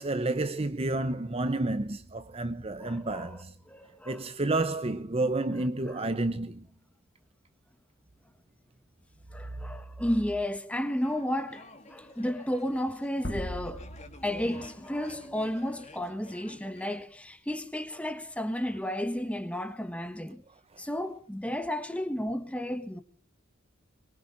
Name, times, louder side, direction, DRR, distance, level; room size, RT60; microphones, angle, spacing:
voice 1, 0.0-3.5 4.1-6.7, right 2 dB, 30° right, 0.8 m, -30 dB
voice 2, 2.8-3.4 3.7-4.2 5.9-6.0 9.3-13.9 14.2-20.4 20.8-23.0, left 1 dB, 5° left, 1.4 m, -33 dB
sound 1, 11.0-17.0, left 2 dB, 35° left, 2.3 m, -50 dB
sound 2, 13.2-15.7, left 1 dB, 60° left, 2.1 m, -40 dB
23.5 x 23.0 x 2.7 m
head